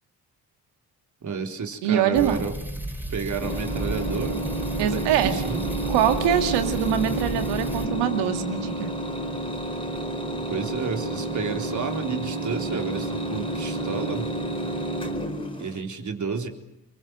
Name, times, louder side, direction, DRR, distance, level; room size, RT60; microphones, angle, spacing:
voice 1, 1.2-2.5 3.1-4.4 4.9-5.7 10.5-14.3 15.6-16.5, right 5 dB, 45° right, 3 dB, 3.9 m, -31 dB
voice 2, 1.8-2.4 4.8-5.4 5.9-8.9, right 10 dB, 80° right, 7 dB, 2.2 m, -23 dB
Turret Fire, 2.1-7.9, right 1 dB, 5° right, 5.1 m, -33 dB
sound 1, 3.4-15.8, right 1 dB, 10° left, 4.1 m, -30 dB
25.0 x 22.0 x 7.8 m, 0.91 s
hypercardioid pair, 50°, 41 cm